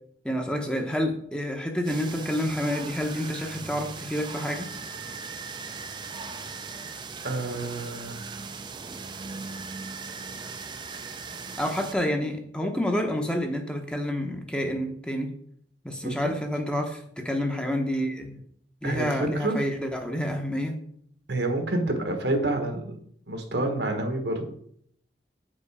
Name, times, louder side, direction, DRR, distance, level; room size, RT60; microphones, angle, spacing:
voice 1, 0.2-4.7 11.6-15.3 15.8-18.4 18.8-20.8, equal, 5° left, 3 dB, 0.9 m, -29 dB
sound 1, 1.8-11.9, right 4 dB, 25° right, 0.6 m, -39 dB
voice 2, 7.2-8.3 16.0-16.3 18.8-19.6 21.3-22.9 23.3-24.5, right 2 dB, 70° right, 5 dB, 1.5 m, -28 dB
7.8 x 5.3 x 4.9 m, 0.66 s
head